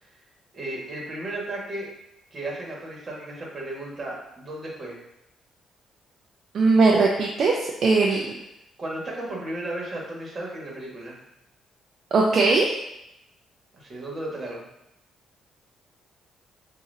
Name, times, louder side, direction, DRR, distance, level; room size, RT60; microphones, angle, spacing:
voice 1, 0.5-1.9 2.3-5.0 8.8-11.2 13.7-14.6, right 1 dB, 40° right, -3 dB, 1.6 m, -34 dB
voice 2, 6.5-8.3 12.1-12.8, right 3 dB, 60° right, -1 dB, 0.5 m, -20 dB
6.9 x 2.6 x 2.7 m, 0.85 s
cardioid pair, 90°, 0 cm